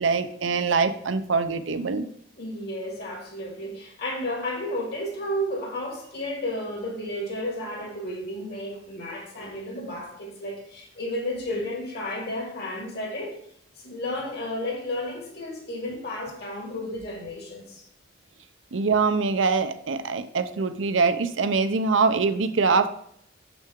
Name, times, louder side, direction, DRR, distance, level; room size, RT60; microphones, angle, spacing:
voice 1, 0.0-2.0 18.7-22.9, right 4 dB, 75° right, 0.6 m, -23 dB
voice 2, 2.4-13.4 13.8-17.9, left 1 dB, 55° left, 2.1 m, -32 dB
6.7 x 6.0 x 3.6 m
head